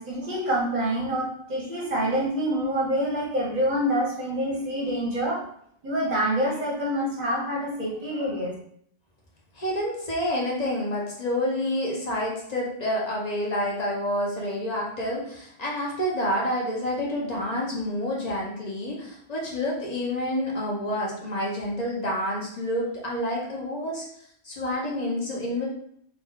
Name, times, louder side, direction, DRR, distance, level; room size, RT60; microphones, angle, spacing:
voice 1, 0.0-5.4 5.8-8.5, equal, 45° right, -3 dB, 0.8 m, -26 dB
voice 2, 9.5-24.1 24.4-25.7, left 1 dB, 40° left, -3 dB, 0.8 m, -28 dB
3.0 x 2.3 x 3.5 m, 0.66 s
omnidirectional pair, 1.2 m